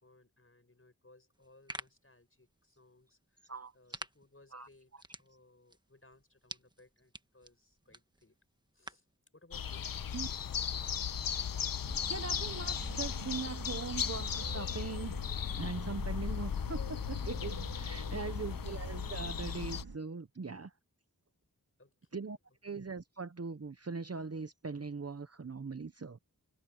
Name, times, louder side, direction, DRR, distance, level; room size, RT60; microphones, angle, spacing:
voice 1, 0.0-8.4 8.7-9.0 9.3-9.9 18.0-18.4 21.8-22.4 22.7-22.8, left 2 dB, 35° left, 6.4 m, -63 dB
sound 1, 1.3-9.2, right 1 dB, 10° right, 1.3 m, -51 dB
voice 2, 3.5-4.0 4.5-4.7 10.1-10.3 12.1-15.1 15.5-20.7 22.1-22.4 22.6-26.2, right 4 dB, 40° right, 0.8 m, -41 dB
sound 2, 9.5-19.8, left 8 dB, 65° left, 0.6 m, -37 dB
sound 3, 11.8-20.0, right 3 dB, 75° right, 2.5 m, -46 dB
wide cardioid pair, 60°, 37 cm